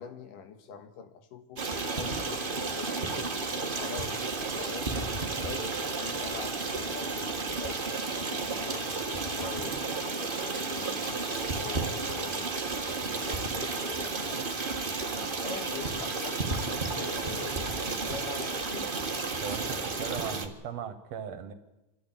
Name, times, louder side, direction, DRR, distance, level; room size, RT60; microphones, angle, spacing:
voice 1, 0.0-1.6 2.0-4.9 5.2-9.8 10.1-11.3 11.5-12.5 13.1-14.3 14.7-15.0 15.4-16.6 17.0-19.2, left 6 dB, 80° left, 8 dB, 3.1 m, -44 dB
Stream, 1.6-20.5, right 3 dB, 40° right, 0.7 m, -32 dB
Camera, 8.0-8.5 10.9-11.7, left 3 dB, 50° left, 3.7 m, -49 dB
voice 2, 19.4-21.5, right 7 dB, 60° right, 8 dB, 2.0 m, -38 dB
29.0 x 12.5 x 8.7 m, 1.0 s
omnidirectional pair, 3.8 m